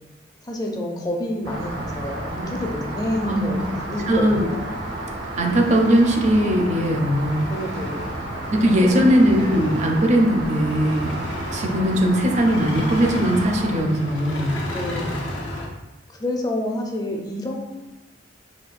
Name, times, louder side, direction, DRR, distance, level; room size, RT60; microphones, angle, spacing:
voice 1, 0.4-4.8 7.5-8.1 8.8-9.0 14.7-15.2 16.1-17.7, left 1 dB, 20° left, 0 dB, 0.4 m, -28 dB
sound 1, 1.1-15.7, left 1 dB, 80° left, 0.7 m, -35 dB
Rain, 1.4-13.8, right 1 dB, 80° right, 0.8 m, -32 dB
voice 2, 3.2-3.6 4.1-4.5 5.4-7.4 8.5-11.1 11.5-14.6, equal, 40° right, 2 dB, 0.5 m, -19 dB
4.1 x 2.4 x 2.4 m, 1.1 s
head